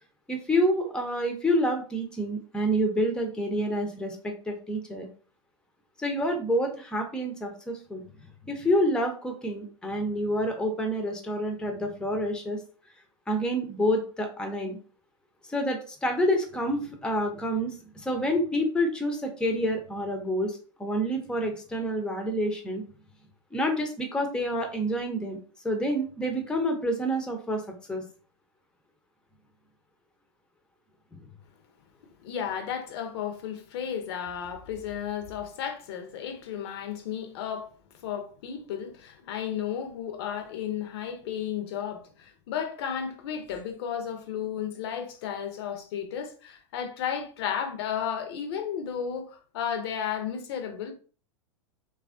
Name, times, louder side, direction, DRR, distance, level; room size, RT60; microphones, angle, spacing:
voice 1, 0.3-5.1 6.0-8.0 8.5-12.6 13.3-14.8 15.5-17.8 18.0-22.8 23.5-25.4 25.6-27.6 27.9-28.0, equal, 5° left, 0.6 m, -28 dB
voice 2, 32.2-37.7 38.0-50.9, left 8 dB, 55° left, 0.6 m, -33 dB
3.3 x 2.3 x 2.5 m
figure-of-eight pair, 90°, 16 cm